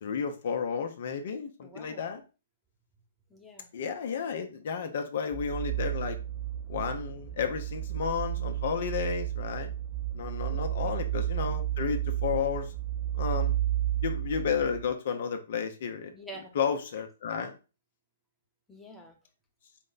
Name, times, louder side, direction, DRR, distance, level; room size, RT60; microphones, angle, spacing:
voice 1, 0.0-2.2 3.7-6.2 6.7-9.7 10.1-12.7 13.1-13.6 14.0-16.1 16.6-17.6, left 7 dB, 60° left, 7 dB, 0.6 m, -32 dB
voice 2, 1.6-2.1 3.3-3.7 10.5-11.0 16.1-16.5 18.7-19.2, right 1 dB, 5° left, 0 dB, 0.9 m, -48 dB
sound 1, 5.3-14.9, right 12 dB, 10° right, 0.3 m, -32 dB
4.3 x 2.1 x 3.8 m, 0.32 s
hypercardioid pair, 135°, 0 cm